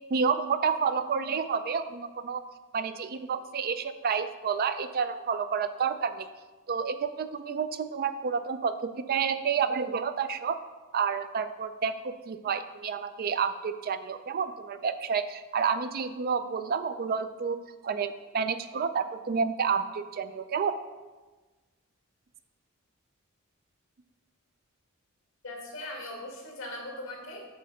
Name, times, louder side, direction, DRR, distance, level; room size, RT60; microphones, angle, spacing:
voice 1, 0.1-2.4 2.7-6.3 6.7-10.6 10.9-17.6 17.8-20.8, right 6 dB, 45° right, 11 dB, 0.4 m, -29 dB
voice 2, 25.4-27.5, left 1 dB, 65° left, 0 dB, 1.8 m, -39 dB
7.7 x 3.4 x 6.5 m, 1.2 s
head